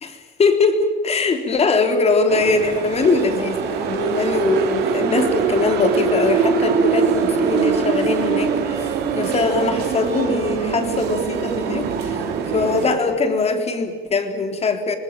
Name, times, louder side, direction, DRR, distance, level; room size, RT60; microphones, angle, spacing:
voice 1, 0.0-12.2 12.5-15.0, left 3 dB, 40° left, 6 dB, 3.7 m, -21 dB
sound 1, 2.3-13.0, right 6 dB, 75° right, 4.2 m, -22 dB
26.0 x 20.0 x 9.0 m, 1.5 s
cardioid pair, 110°, 17 cm